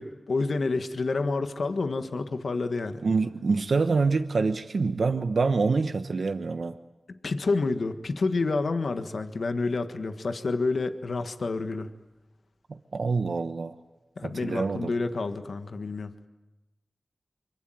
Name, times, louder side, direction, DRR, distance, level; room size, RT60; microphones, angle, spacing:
voice 1, 0.0-3.0 7.1-11.9 14.2-16.1, left 3 dB, 80° left, 8 dB, 1.5 m, -29 dB
voice 2, 3.0-6.8 12.7-13.8 14.2-14.9, right 4 dB, 80° right, 8 dB, 1.1 m, -26 dB
25.5 x 24.0 x 9.2 m, 1.1 s
cardioid pair, 50°, 0 cm